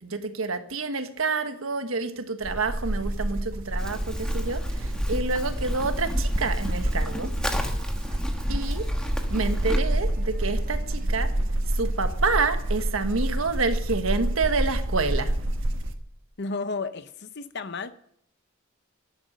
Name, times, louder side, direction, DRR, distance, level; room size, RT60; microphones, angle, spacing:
voice 1, 0.0-7.6 8.5-8.9 9.3-11.3 11.7-15.3, right 4 dB, 80° right, 8 dB, 1.4 m, -28 dB
sound 1, 2.4-15.9, right 1 dB, 65° right, 1.4 m, -29 dB
sound 2, 3.1-11.6, right 1 dB, 40° right, 1.6 m, -49 dB
Livestock farm animals working animals, 3.8-9.8, equal, 5° left, 1.3 m, -30 dB
voice 2, 16.4-17.9, left 3 dB, 55° left, 12 dB, 0.7 m, -32 dB
13.0 x 10.5 x 6.4 m, 0.67 s
head